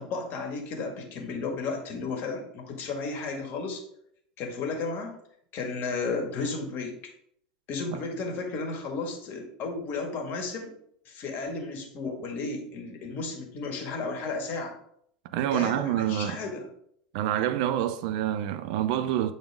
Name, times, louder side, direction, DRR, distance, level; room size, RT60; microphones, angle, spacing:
voice 1, 0.0-3.8 4.4-5.2 5.5-7.0 7.7-10.7 11.1-14.8 15.4-16.7, left 4 dB, 45° left, 1.9 m, -33 dB
voice 2, 15.3-16.4 17.1-19.3, right 11 dB, 60° right, 0.5 m, -27 dB
8.6 x 4.0 x 3.6 m
hypercardioid pair, 90°, 4 cm